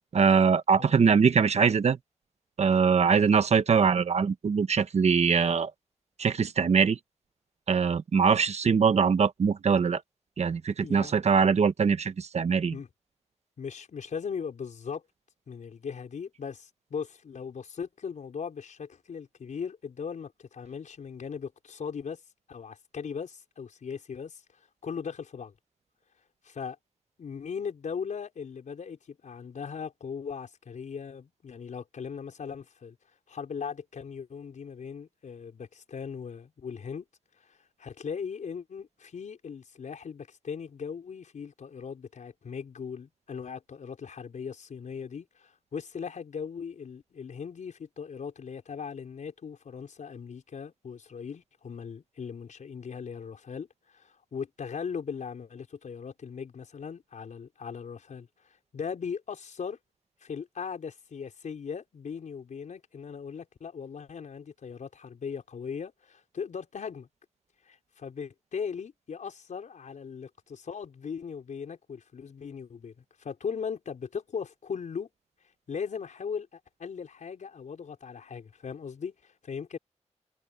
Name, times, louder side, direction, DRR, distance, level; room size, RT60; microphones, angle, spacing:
voice 1, 0.1-2.0 2.6-5.7 6.2-7.0 7.7-10.0 10.4-12.8, right 6 dB, 65° right, 1.1 m, -22 dB
voice 2, 0.8-1.2 10.8-11.2 12.7-12.9 13.6-15.0 15.5-22.2 22.5-24.4 24.8-25.5 26.4-26.8 27.2-33.0 33.3-37.1 37.5-58.3 58.7-59.8 60.2-67.1 67.7-72.9 73.2-75.1 75.7-79.8, left 6 dB, 90° left, 5.3 m, -38 dB
wide cardioid pair, 145°, 12 cm